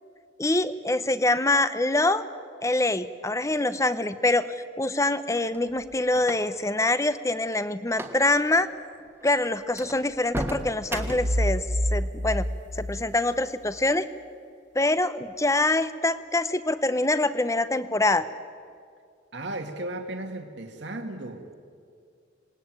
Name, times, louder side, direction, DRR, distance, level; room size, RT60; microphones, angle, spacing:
voice 1, 0.4-2.2 2.6-8.7 9.2-11.7 11.9-12.5 12.8-14.1 14.7-18.2, left 2 dB, 15° left, 13 dB, 0.8 m, -25 dB
sound 1, 5.3-6.7 7.9-8.2 8.5-8.7 9.2-9.3 9.7-11.4, right 1 dB, 10° right, 1.5 m, -34 dB
sound 2, 10.9-13.8, equal, 40° right, 1.3 m, -28 dB
voice 2, 19.3-21.5, right 1 dB, 70° right, 3 dB, 2.2 m, -35 dB
26.5 x 20.0 x 9.1 m, 2.2 s
head